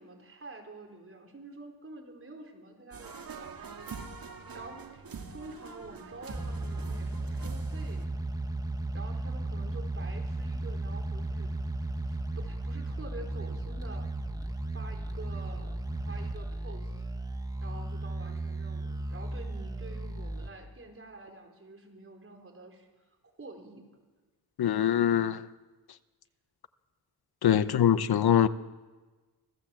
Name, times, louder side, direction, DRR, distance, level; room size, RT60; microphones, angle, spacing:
voice 1, 0.0-3.7 4.5-5.0 5.3-8.1 8.9-11.5 12.1-14.1 14.4-15.8 16.1-17.1 17.6-22.9 23.4-23.8 27.5-27.8, right 2 dB, 35° right, 4.3 m, -48 dB
sound 1, 2.9-8.0, right 5 dB, 65° right, 2.2 m, -45 dB
sound 2, 6.3-20.5, right 2 dB, 10° right, 1.2 m, -35 dB
voice 2, 24.6-25.4 27.4-28.5, left 9 dB, 75° left, 0.9 m, -23 dB
25.0 x 15.5 x 7.6 m
wide cardioid pair, 100°, 38 cm